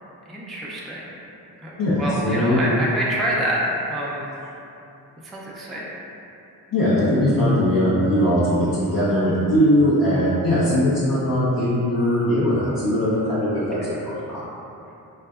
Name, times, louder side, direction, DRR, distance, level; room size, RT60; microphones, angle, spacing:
voice 1, 0.3-1.1 1.6-3.6 3.9-4.3 5.2-5.9 13.8-13.9, right 1 dB, ahead, -5 dB, 0.3 m, -27 dB
voice 2, 1.8-2.6 6.7-14.4, equal, 50° left, -10 dB, 0.6 m, -20 dB
2.6 x 2.1 x 2.2 m, 2.8 s
supercardioid pair, 45°, 44 cm